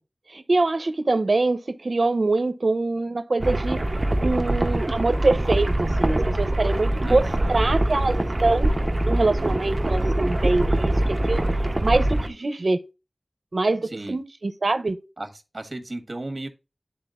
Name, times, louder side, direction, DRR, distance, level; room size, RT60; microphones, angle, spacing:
voice 1, 0.3-3.8 4.2-8.7 9.0-11.4 11.8-12.8 13.5-15.0, right 3 dB, 75° right, 0.7 m, -24 dB
sound 1, 3.4-12.3, right 1 dB, 35° right, 1.0 m, -23 dB
voice 2, 7.0-7.8 13.9-14.2 15.2-15.3 15.5-16.5, right 2 dB, 55° right, 1.6 m, -34 dB
12.0 x 4.2 x 2.5 m
wide cardioid pair, 55°, 0 cm